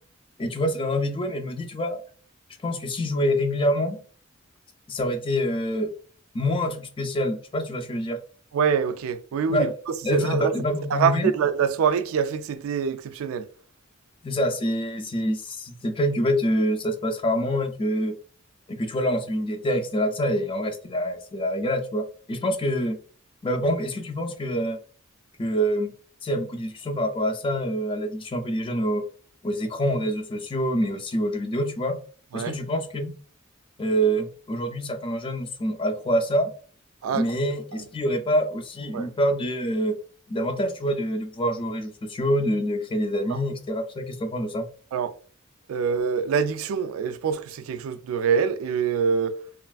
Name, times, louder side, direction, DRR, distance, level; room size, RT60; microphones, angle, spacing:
voice 1, 0.4-2.0 2.6-4.0 4.9-5.9 6.3-8.2 9.5-9.7 10.0-11.3 14.2-18.2 18.7-23.0 23.4-24.8 25.4-25.9 26.2-29.0 29.4-32.0 32.3-33.1 33.8-36.5 37.1-40.0 40.3-44.7, equal, 25° left, 0.4 m, -26 dB
voice 2, 8.5-9.7 10.1-10.5 10.9-13.4 32.3-32.6 37.0-37.2 38.9-39.1 44.9-45.1 45.7-49.4, right 6 dB, 80° right, 0.3 m, -25 dB
3.1 x 2.4 x 2.3 m
head